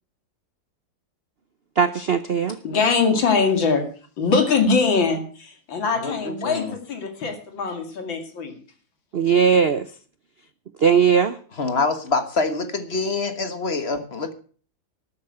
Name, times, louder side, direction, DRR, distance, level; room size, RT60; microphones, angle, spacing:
voice 1, 1.8-2.6 9.1-9.9 10.8-11.4, right 7 dB, 70° right, 12 dB, 0.5 m, -18 dB
voice 2, 2.6-3.8 4.2-8.5, left 4 dB, 85° left, 5 dB, 3.1 m, -22 dB
voice 3, 5.9-6.7 11.6-14.3, left 3 dB, 35° left, 10 dB, 1.4 m, -25 dB
13.0 x 8.6 x 7.8 m, 0.42 s
omnidirectional pair, 2.0 m